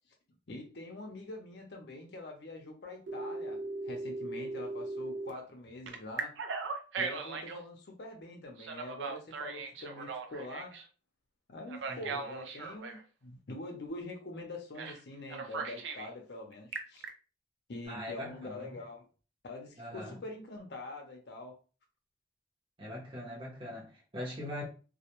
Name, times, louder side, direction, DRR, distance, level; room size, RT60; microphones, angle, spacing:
voice 1, 0.5-6.3 7.0-10.7 11.5-17.0 17.7-19.0 19.4-21.5, left 2 dB, 65° left, 0.6 m, -44 dB
Telephone, 3.1-5.3 5.9-7.6 8.6-10.8 11.7-13.0 14.8-15.0 15.3-16.1 16.5-17.1, right 4 dB, 90° right, 0.5 m, -38 dB
voice 2, 17.9-18.7 19.8-20.2 22.8-24.6, left 1 dB, 30° right, 0.8 m, -42 dB
2.3 x 2.1 x 2.9 m
head